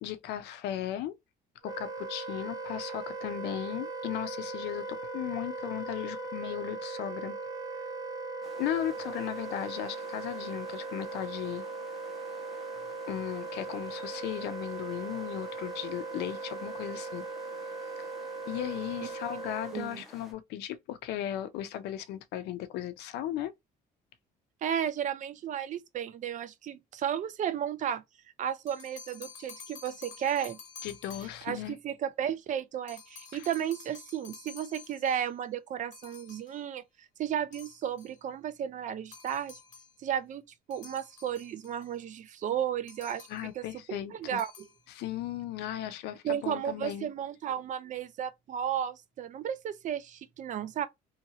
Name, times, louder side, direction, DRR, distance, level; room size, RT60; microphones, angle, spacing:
voice 1, 0.0-1.2 1.6-7.4 8.6-11.7 13.1-17.3 18.0-18.1 18.5-23.5 30.8-31.8 33.3-33.5 43.3-44.4 44.9-47.1, left 12 dB, 80° left, 0.5 m, -36 dB
Wind instrument woodwind instrument, 1.6-19.8, right 3 dB, 20° right, 0.8 m, -39 dB
sound 1, 8.4-20.3, left 1 dB, ahead, 1.1 m, -54 dB
voice 2, 19.7-20.0 24.6-28.0 28.4-30.6 31.4-36.8 37.2-39.6 40.0-40.4 40.7-43.3 43.6-44.5 46.2-50.9, right 9 dB, 45° right, 0.4 m, -33 dB
sound 2, 28.5-31.6 32.9-35.3 35.9-36.6 37.5-38.2 39.1-40.0 40.7-41.9 42.9-43.6 44.2-44.8, left 6 dB, 50° left, 1.2 m, -50 dB
2.8 x 2.7 x 2.8 m
cardioid pair, 110°, 17 cm